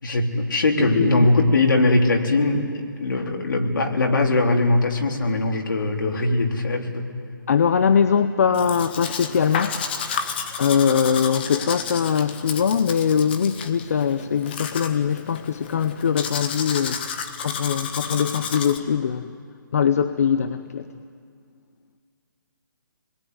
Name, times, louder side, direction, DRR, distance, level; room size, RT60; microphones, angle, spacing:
voice 1, 0.0-2.7 3.0-7.1, left 2 dB, 70° left, 2 dB, 3.8 m, -20 dB
voice 2, 0.9-1.3 7.5-9.8 10.6-17.0 17.4-19.4 19.7-20.9, left 7 dB, 45° left, 11 dB, 0.8 m, -22 dB
Domestic sounds home sounds, 8.5-18.8, left 6 dB, 30° left, 1.4 m, -32 dB
26.5 x 21.5 x 9.7 m, 2.2 s
hypercardioid pair, 170°, 11 cm